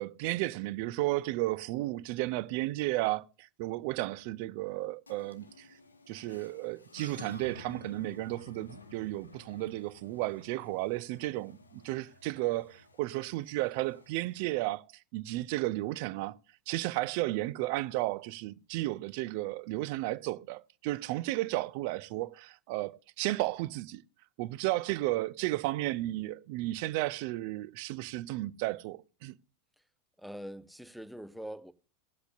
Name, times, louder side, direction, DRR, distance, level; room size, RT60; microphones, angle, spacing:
voice 1, 0.0-5.7 6.1-16.4 16.7-24.0 24.4-29.4, right 18 dB, 45° right, 0.5 m, -33 dB
sound 1, 5.1-14.4, left 3 dB, 75° left, 0.9 m, -53 dB
voice 2, 30.2-31.7, equal, ahead, 0.7 m, -43 dB
19.0 x 8.1 x 2.6 m
figure-of-eight pair, 90°, 0 cm